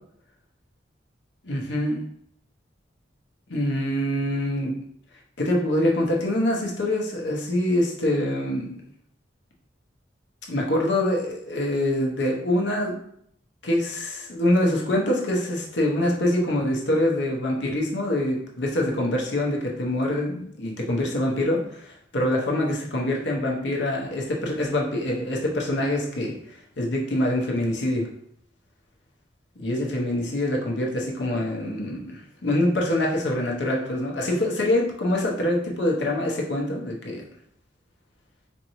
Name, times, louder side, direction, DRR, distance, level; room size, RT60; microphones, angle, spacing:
voice 1, 1.4-2.0 3.5-4.8 5.4-8.7 10.5-13.0 13.6-28.1 29.6-37.2, left 1 dB, 70° left, -1 dB, 0.9 m, -25 dB
4.4 x 2.7 x 3.0 m, 0.70 s
head